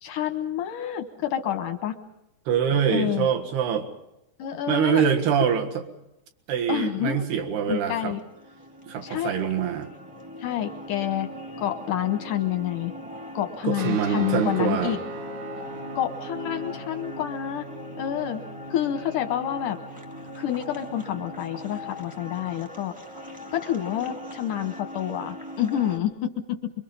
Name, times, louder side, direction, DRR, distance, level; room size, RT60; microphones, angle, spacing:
voice 1, 0.0-2.0 2.9-3.3 4.4-5.0 6.7-7.3 7.7-8.2 9.0-9.3 10.4-11.3 11.6-12.9 13.4-15.0 16.0-17.7 18.0-18.4 18.7-19.8 20.4-22.9 23.5-26.7, left 11 dB, 75° left, 8 dB, 1.9 m, -28 dB
voice 2, 2.5-3.9 4.7-5.8 6.5-8.2 8.9-9.9 13.6-15.0, right 8 dB, 70° right, 5 dB, 3.5 m, -24 dB
sound 1, 7.3-26.0, left 1 dB, 5° right, 0.5 m, -41 dB
sound 2, 13.7-22.7, right 3 dB, 50° right, 2.7 m, -40 dB
26.0 x 23.0 x 5.5 m, 0.87 s
omnidirectional pair, 4.9 m